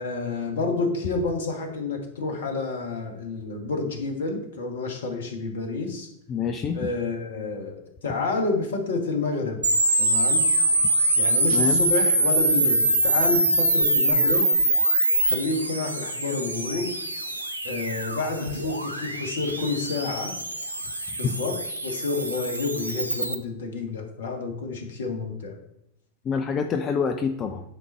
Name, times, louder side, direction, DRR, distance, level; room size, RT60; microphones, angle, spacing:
voice 1, 0.0-6.1 6.7-9.6 10.0-10.5 11.2-14.5 15.2-17.0 17.6-20.4 21.2-25.6, left 3 dB, 60° left, 4 dB, 1.5 m, -29 dB
voice 2, 6.3-6.8 11.5-11.9 21.2-21.3 26.2-27.6, left 6 dB, 25° left, 6 dB, 0.5 m, -26 dB
sound 1, 9.6-23.3, right 1 dB, 85° right, 0.7 m, -24 dB
9.0 x 4.0 x 4.5 m, 0.79 s
figure-of-eight pair, 90°, 0 cm